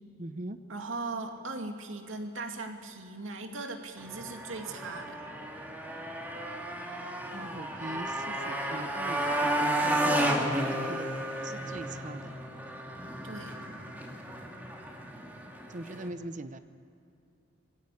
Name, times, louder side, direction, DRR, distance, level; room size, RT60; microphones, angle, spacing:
voice 1, 0.2-0.6 7.3-11.1 11.4-12.3 15.7-16.6, right 2 dB, 40° right, 11 dB, 0.7 m, -41 dB
voice 2, 0.7-5.2 13.2-13.6, right 3 dB, 85° right, 4 dB, 2.5 m, -38 dB
Motorcycle, 4.0-16.1, right 1 dB, 10° right, 2.2 m, -33 dB
22.5 x 16.5 x 8.5 m, 2.6 s
head